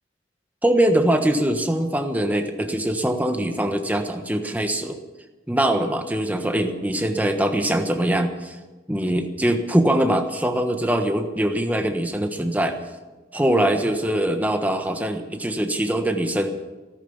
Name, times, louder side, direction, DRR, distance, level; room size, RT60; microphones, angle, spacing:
voice 1, 0.6-5.0 5.5-8.6 8.9-12.8 13.3-16.5, right 1 dB, 10° right, 5 dB, 1.3 m, -22 dB
15.0 x 13.5 x 7.2 m, 1.2 s
head